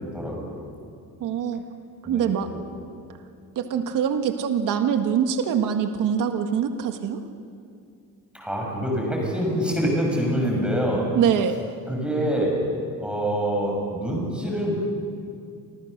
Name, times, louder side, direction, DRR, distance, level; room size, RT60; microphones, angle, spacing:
voice 1, 0.1-0.5 2.0-2.3 8.3-11.0 11.9-12.6 13.0-14.8, equal, 5° right, -1 dB, 6.5 m, -25 dB
voice 2, 1.2-1.6 2.0-2.5 3.6-7.2 11.1-11.6, right 8 dB, 65° right, 6 dB, 1.8 m, -24 dB
29.5 x 26.0 x 6.7 m, 2.4 s
cardioid pair, 165°, 34 cm